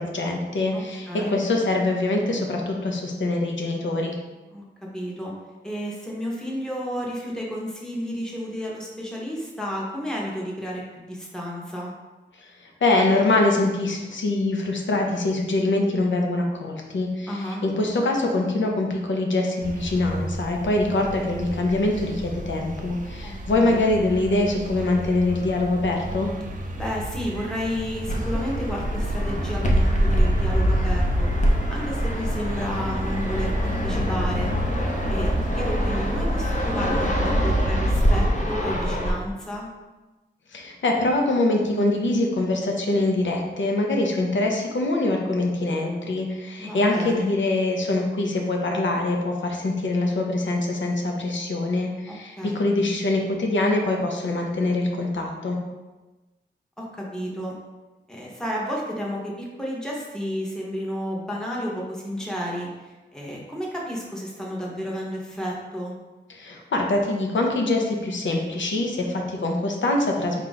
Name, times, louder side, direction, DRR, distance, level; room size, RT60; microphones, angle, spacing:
voice 1, 0.0-4.1 12.6-17.3 17.6-26.3 40.5-55.6 66.3-70.4, left 2 dB, 90° left, 1 dB, 0.7 m, -24 dB
voice 2, 0.7-1.4 4.5-4.6 4.9-5.3 5.6-11.9 17.3-17.6 23.2-23.9 26.7-34.6 35.1-39.7 46.6-47.3 52.1-52.6 56.8-57.5 58.1-65.9, equal, 5° left, -3 dB, 0.8 m, -32 dB
sound 1, 19.6-37.7, right 1 dB, 45° right, 0.5 m, -34 dB
Fixed-wing aircraft airplane, 28.1-39.1, equal, 40° left, 0.7 m, -23 dB
4.3 x 2.4 x 3.9 m, 1.2 s
wide cardioid pair, 90°, 19 cm